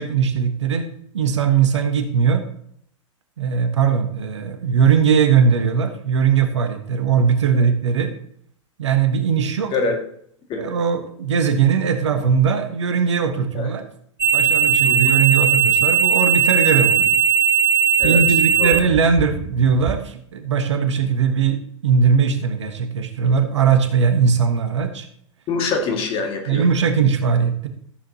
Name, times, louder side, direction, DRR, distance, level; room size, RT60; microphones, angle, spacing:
voice 1, 0.0-2.4 3.4-8.2 8.8-9.7 10.6-13.8 14.3-17.2 18.0-21.6 21.8-25.1 26.5-27.7, right 6 dB, 65° right, 8 dB, 1.2 m, -19 dB
sound 1, 14.2-20.0, right 8 dB, 15° right, 0.5 m, -18 dB
voice 2, 25.5-26.6, left 4 dB, 35° left, 2 dB, 2.0 m, -24 dB
14.0 x 7.6 x 2.8 m, 0.67 s
figure-of-eight pair, 90°, 16 cm